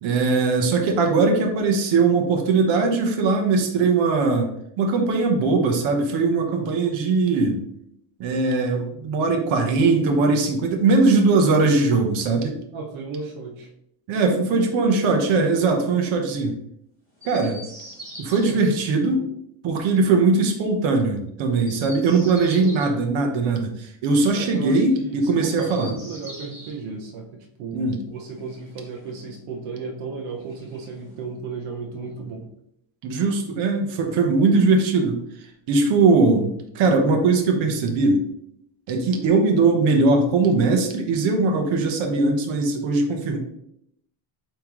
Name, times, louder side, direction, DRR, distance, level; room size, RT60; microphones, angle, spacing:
voice 1, 0.0-4.5 4.8-7.6 8.2-12.5 14.1-16.5 17.2-17.6 18.2-19.3 19.6-25.9 27.7-28.0 33.0-35.2 35.7-38.2 38.9-43.4, right 3 dB, 65° right, 3 dB, 1.3 m, -20 dB
voice 2, 12.7-13.7 18.3-18.7 22.3-22.8 24.3-32.5, right 4 dB, 85° right, 2 dB, 1.2 m, -34 dB
Chirp tweet, 17.2-18.5 21.5-22.9 25.3-26.8 28.2-29.3 30.4-31.3, equal, 25° right, 2.3 m, -43 dB
8.6 x 3.5 x 3.1 m, 0.74 s
cardioid pair, 155°, 50 cm